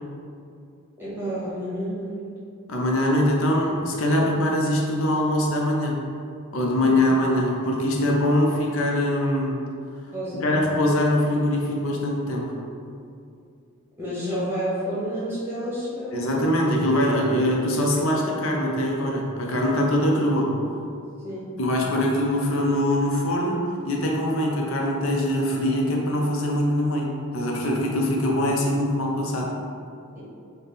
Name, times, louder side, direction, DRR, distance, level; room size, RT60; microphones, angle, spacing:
voice 1, 1.0-2.3 6.8-6.9 10.1-10.5 14.0-16.2 21.2-21.5 30.1-30.2, equal, 10° right, -10 dB, 1.0 m, -30 dB
voice 2, 2.7-6.0 6.5-9.6 10.4-12.5 16.1-20.6 21.6-29.5, left 1 dB, 75° left, -1 dB, 0.6 m, -23 dB
4.0 x 2.1 x 3.6 m, 2.4 s
head